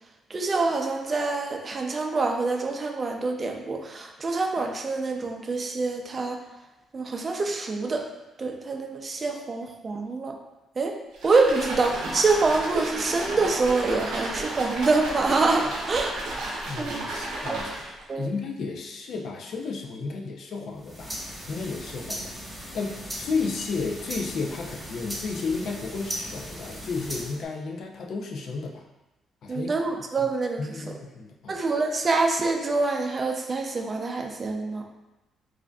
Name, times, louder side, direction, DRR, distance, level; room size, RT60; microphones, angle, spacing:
voice 1, 0.3-6.4 6.9-8.1 8.4-10.4 10.8-11.0 11.2-16.1 16.8-17.0 17.5-17.6 18.1-18.3 29.5-30.6 31.5-34.8, right 3 dB, 35° right, 3 dB, 0.4 m, -26 dB
sound 1, 11.1-18.0, right 2 dB, 90° right, 0.9 m, -33 dB
voice 2, 16.6-17.7 18.1-21.2 21.5-22.4 22.7-28.8 29.4-29.7 30.2-30.3 30.6-31.6, left 4 dB, 65° left, 1 dB, 0.5 m, -33 dB
sound 2, 20.7-27.4, equal, 5° right, 1.1 m, -38 dB
4.8 x 2.5 x 2.3 m, 1.0 s
cardioid pair, 90°, 0 cm